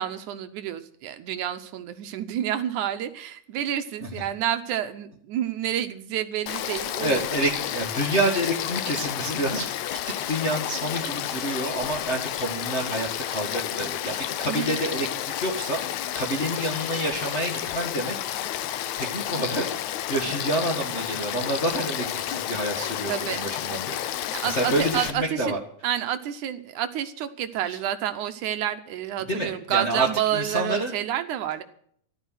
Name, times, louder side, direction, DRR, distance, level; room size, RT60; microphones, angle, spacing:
voice 1, 0.0-7.2 14.4-14.7 23.1-23.5 24.3-25.6 25.8-31.6, right 11 dB, 75° right, 8 dB, 2.1 m, -29 dB
Frog / Stream, 6.5-25.1, left 12 dB, 70° left, 1.8 m, -31 dB
voice 2, 7.0-15.8 16.1-18.2 18.5-18.6 19.0-25.6 27.6-27.8 29.3-30.9, right 1 dB, 30° left, -1 dB, 1.5 m, -28 dB
14.0 x 12.5 x 6.4 m, 0.64 s
omnidirectional pair, 3.8 m